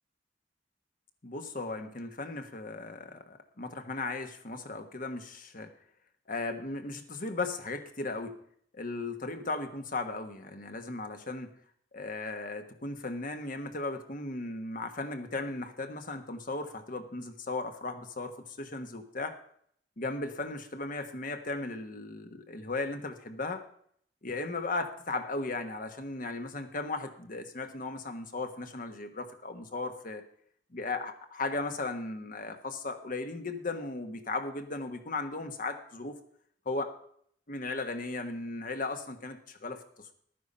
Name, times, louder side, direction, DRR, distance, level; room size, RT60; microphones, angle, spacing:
voice 1, 1.2-5.7 6.3-8.3 8.7-11.6 11.9-19.4 20.0-23.6 24.2-30.2 30.7-36.2 36.6-36.9 37.5-39.8, left 3 dB, 50° left, 7 dB, 1.3 m, -36 dB
12.0 x 9.3 x 5.5 m, 0.64 s
head